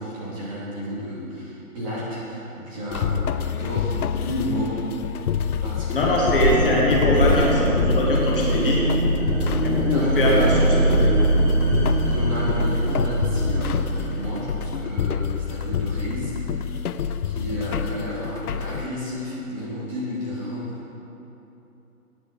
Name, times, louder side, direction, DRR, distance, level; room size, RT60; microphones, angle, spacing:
voice 1, 0.0-4.8 5.3-6.4 9.6-11.0 12.0-20.9, equal, 25° right, -8 dB, 2.7 m, -32 dB
sound 1, 2.9-18.9, left 8 dB, 85° left, 0.6 m, -28 dB
voice 2, 5.9-8.8 9.6-10.7 11.0-11.1, left 1 dB, 40° left, -4 dB, 1.9 m, -22 dB
sound 2, 6.3-15.1, right 1 dB, 5° right, 1.1 m, -22 dB
15.5 x 9.3 x 4.0 m, 3.0 s
hypercardioid pair, 170°, 43 cm